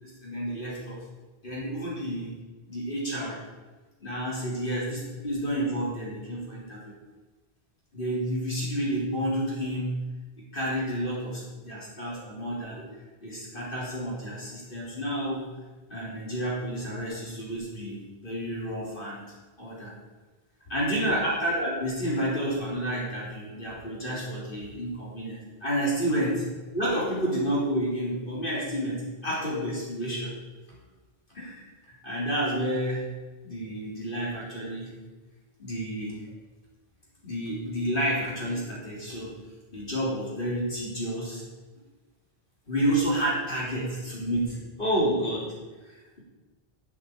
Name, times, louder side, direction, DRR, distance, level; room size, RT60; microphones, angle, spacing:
voice 1, 0.0-1.0 1.4-2.3 2.7-3.4 4.0-6.9 7.9-9.9 10.5-12.8 13.2-15.4 15.9-19.2 19.6-19.9 20.7-26.5 26.7-29.0 29.2-30.3 31.3-33.0 33.4-34.9 35.6-36.2 37.2-39.3 39.7-41.4 42.7-45.4 45.9-46.2, equal, 55° left, -5 dB, 3.7 m, -30 dB
8.3 x 8.1 x 8.7 m, 1.2 s
omnidirectional pair, 1.0 m